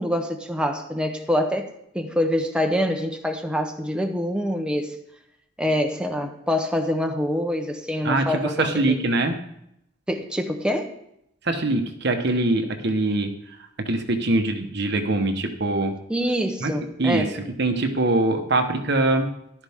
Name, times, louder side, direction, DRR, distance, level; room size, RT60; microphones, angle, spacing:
voice 1, 0.0-5.0 5.6-9.1 10.1-11.0 16.1-17.3, equal, 5° right, 4 dB, 0.9 m, -25 dB
voice 2, 8.0-9.4 11.4-15.9 16.6-16.7 17.0-19.3, right 2 dB, 55° right, 5 dB, 1.2 m, -23 dB
14.0 x 12.0 x 3.6 m, 0.78 s
head